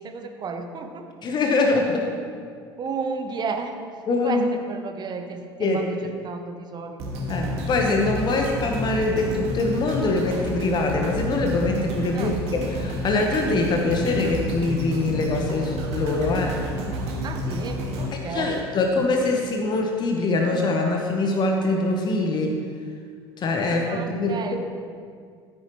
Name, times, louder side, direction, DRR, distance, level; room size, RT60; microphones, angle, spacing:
voice 1, 0.0-1.0 2.8-3.7 4.2-7.1 12.1-12.4 17.2-18.7 23.6-24.6, right 4 dB, 35° right, 6 dB, 1.1 m, -33 dB
voice 2, 1.2-2.1 4.1-4.4 5.6-6.1 7.3-16.6 18.3-22.6 23.4-24.4, left 2 dB, 35° left, 2 dB, 1.1 m, -23 dB
sound 1, 7.0-19.2 19.7-19.8, equal, 50° right, 1.8 m, -30 dB
13.0 x 10.0 x 3.1 m, 2.1 s
figure-of-eight pair, 65°, 13 cm